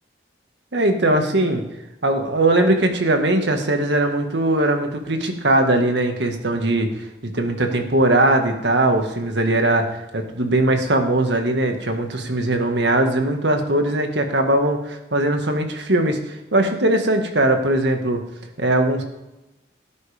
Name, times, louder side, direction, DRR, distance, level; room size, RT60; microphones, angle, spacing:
voice 1, 0.7-1.6 2.0-18.2 18.6-19.0, right 1 dB, 75° right, 4 dB, 1.7 m, -20 dB
17.5 x 9.5 x 3.5 m, 0.96 s
head